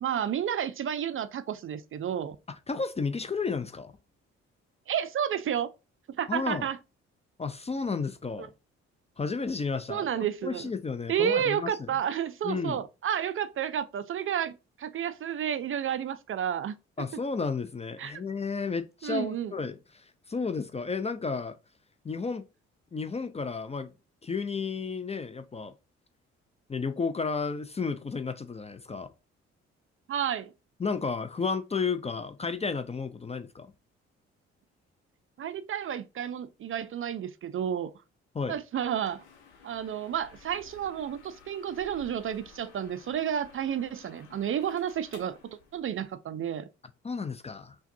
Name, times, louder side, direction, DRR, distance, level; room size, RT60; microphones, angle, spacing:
voice 1, 0.0-2.4 4.9-5.7 6.1-6.8 8.4-8.5 9.9-10.7 11.1-17.1 18.0-18.2 19.0-19.5 30.1-30.5 35.4-37.9 38.5-39.2 39.6-46.7, right 9 dB, 40° right, 0.4 m, -31 dB
voice 2, 2.7-4.0 6.3-6.7 7.4-8.5 9.2-11.7 12.4-12.8 17.0-21.6 22.0-22.5 22.9-23.9 24.2-25.7 26.7-29.1 30.8-33.7 38.3-38.6 47.0-47.8, left 4 dB, 20° left, 0.4 m, -32 dB
sound 1, 39.0-46.1, left 6 dB, 85° left, 0.8 m, -55 dB
5.7 x 2.3 x 2.6 m
hypercardioid pair, 45°, 33 cm